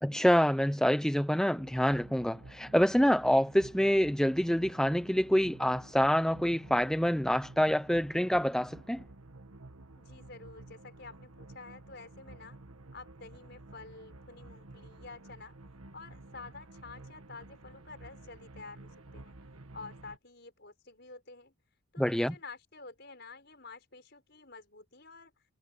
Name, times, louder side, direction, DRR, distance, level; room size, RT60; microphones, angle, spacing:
voice 1, 0.0-9.0 22.0-22.3, equal, 5° left, 0.5 m, -26 dB
sound 1, 1.5-20.2, right 2 dB, 90° right, 1.6 m, -51 dB
voice 2, 10.0-12.6 12.9-15.6 15.9-19.4 19.7-21.5 21.9-25.3, left 3 dB, 50° left, 6.0 m, -49 dB
head